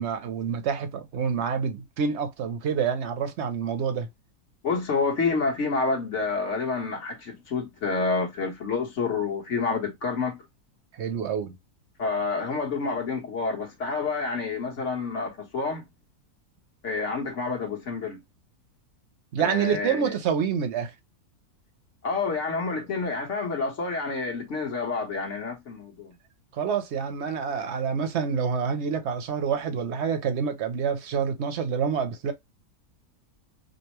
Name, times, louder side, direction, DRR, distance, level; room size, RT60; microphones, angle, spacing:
voice 1, 0.0-4.1 10.9-11.6 19.3-20.9 26.5-32.3, right 6 dB, 55° right, 1.0 m, -27 dB
voice 2, 4.6-10.4 12.0-15.9 16.8-18.2 19.4-20.1 22.0-26.1, left 4 dB, 55° left, 1.4 m, -28 dB
5.3 x 2.1 x 2.9 m
omnidirectional pair, 1.6 m